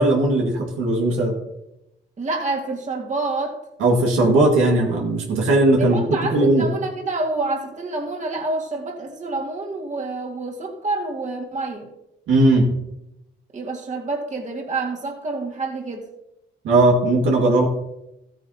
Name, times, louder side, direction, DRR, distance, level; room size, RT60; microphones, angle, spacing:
voice 1, 0.0-1.3 3.8-6.6 12.3-12.7 16.6-17.7, right 2 dB, 90° right, 0 dB, 2.0 m, -18 dB
voice 2, 2.2-3.6 5.8-11.9 13.5-16.1, right 3 dB, 35° right, 0 dB, 2.0 m, -28 dB
14.0 x 9.0 x 2.9 m, 0.85 s
cardioid pair, 90°, 20 cm